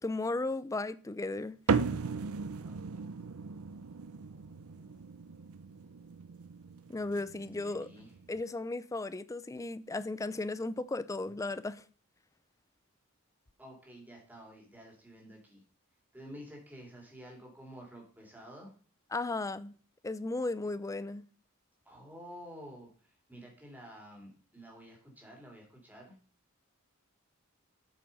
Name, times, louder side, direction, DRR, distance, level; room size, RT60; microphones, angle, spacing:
voice 1, 0.0-1.6 6.9-7.9 8.3-11.8 19.1-19.7 20.0-21.3, left 2 dB, 15° left, 0.4 m, -35 dB
sound 1, 1.7-8.4, right 5 dB, 75° right, 0.6 m, -37 dB
voice 2, 7.4-8.1 13.6-15.6 16.1-18.7 21.8-26.1, equal, 10° right, 2.9 m, -50 dB
8.3 x 5.9 x 5.3 m
head